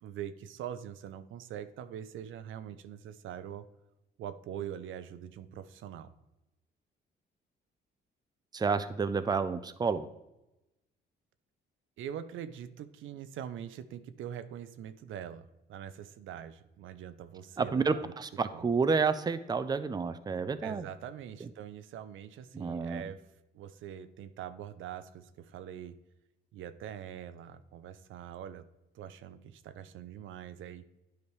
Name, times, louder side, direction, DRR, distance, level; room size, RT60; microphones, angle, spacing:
voice 1, 0.0-3.7 4.2-6.1 12.0-18.1 18.5-18.7 20.6-23.2 23.5-26.0 26.5-28.6 28.9-30.9, right 9 dB, 80° right, 11 dB, 0.6 m, -43 dB
voice 2, 8.5-10.1 17.6-20.8 22.5-23.0, right 5 dB, 20° right, 11 dB, 0.5 m, -30 dB
9.6 x 5.1 x 3.2 m, 0.94 s
cardioid pair, 90°, 20 cm